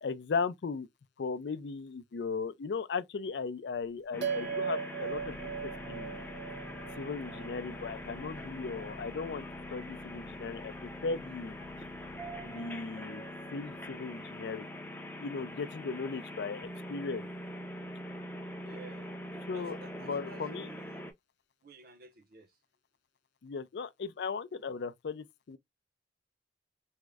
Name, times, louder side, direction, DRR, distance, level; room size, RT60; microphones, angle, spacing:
voice 1, 0.0-0.9 1.2-6.2 7.0-9.4 9.7-11.6 12.4-13.2 13.5-14.7 15.2-17.3 19.5-19.8 20.1-20.7 23.4-25.6, left 4 dB, 70° left, 0.4 m, -37 dB
sound 1, 4.1-21.1, left 1 dB, 10° left, 0.4 m, -43 dB
sound 2, 4.2-8.9, right 7 dB, 80° right, 0.8 m, -39 dB
sound 3, 5.0-17.4 18.0-18.1, left 1 dB, 40° left, 1.0 m, -55 dB
voice 2, 18.6-19.1 19.5-21.0 21.6-22.5, right 3 dB, 55° right, 0.7 m, -53 dB
3.5 x 2.0 x 3.4 m
head